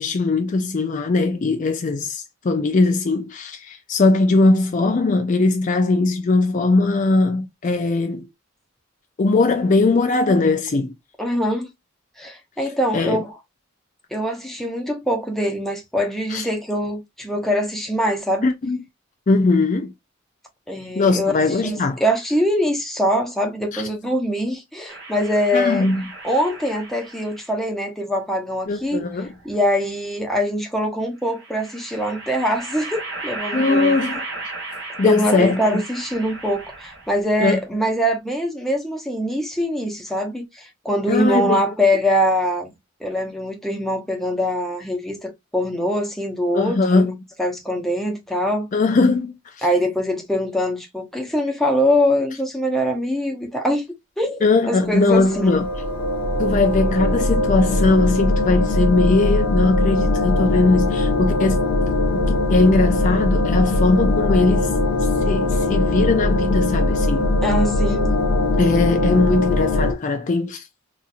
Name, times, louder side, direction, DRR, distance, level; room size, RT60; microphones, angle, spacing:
voice 1, 0.0-8.3 9.2-11.0 12.9-13.2 16.3-16.5 18.4-18.8 19.3-19.9 20.9-22.0 23.7-23.9 25.5-26.1 28.7-29.3 33.5-34.2 35.0-35.8 37.4-37.6 41.1-41.6 46.5-47.1 48.7-49.7 54.4-55.7 56.4-61.6 62.1-62.2 62.5-64.7 65.2-67.3 68.6-70.7, left 3 dB, 40° left, 0.4 m, -19 dB
voice 2, 11.2-11.7 12.2-13.3 14.1-18.5 20.7-21.3 21.6-25.9 26.2-29.0 29.4-34.0 35.0-42.7 43.0-48.7 49.6-53.9 54.2-55.6 67.4-68.1, equal, ahead, 0.8 m, -23 dB
sound 1, 24.9-27.5 28.7-29.7 31.3-37.3, right 2 dB, 60° right, 1.3 m, -35 dB
sound 2, 55.1-69.9, left 2 dB, 75° left, 0.7 m, -20 dB
4.2 x 2.5 x 2.5 m
head